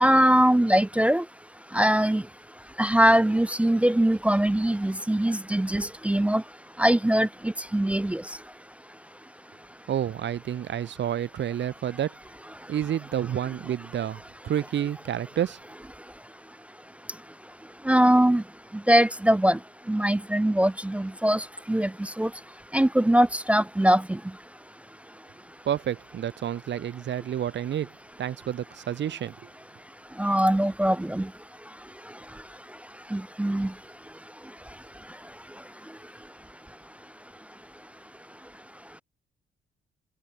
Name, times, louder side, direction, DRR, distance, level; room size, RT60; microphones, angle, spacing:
voice 1, 0.0-1.2 1.7-2.2 2.8-6.4 6.8-8.2 17.9-18.4 18.9-19.6 19.9-22.3 22.7-24.2 30.2-31.3 33.1-33.7, right 1 dB, 5° right, 0.3 m, -22 dB
voice 2, 9.9-12.2 12.7-15.6 25.6-27.9 28.2-29.4, right 10 dB, 65° right, 3.2 m, -29 dB
cardioid pair, 90°, 20 cm